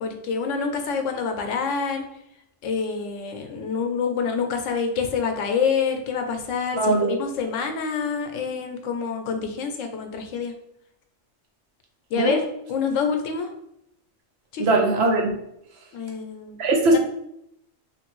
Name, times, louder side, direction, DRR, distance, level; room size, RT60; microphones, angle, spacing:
voice 1, 0.0-2.0 2.6-10.5 12.1-12.4 12.7-13.5 14.5-14.7 15.9-16.6 16.9-17.0, left 6 dB, 85° left, 5 dB, 0.9 m, -27 dB
voice 2, 6.8-7.2 12.2-12.4 14.6-15.4 16.6-17.0, right 2 dB, 65° right, 0 dB, 0.8 m, -20 dB
3.2 x 2.5 x 3.0 m, 0.78 s
omnidirectional pair, 1.3 m